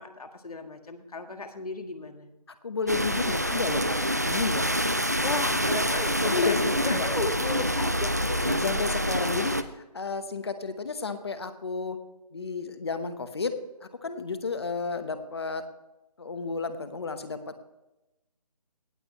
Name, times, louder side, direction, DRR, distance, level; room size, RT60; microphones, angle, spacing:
voice 1, 0.0-2.3 5.2-8.2, left 3 dB, 65° left, 6 dB, 1.7 m, -35 dB
voice 2, 2.6-4.0 4.2-4.6 6.2-6.6 6.8-7.1 8.3-12.0 12.3-13.5 14.0-15.6 16.2-17.5, left 4 dB, 40° left, 10 dB, 1.1 m, -32 dB
sound 1, 2.9-9.6, equal, 25° right, 0.4 m, -26 dB
18.5 x 7.7 x 3.1 m, 0.94 s
figure-of-eight pair, 175°, 20 cm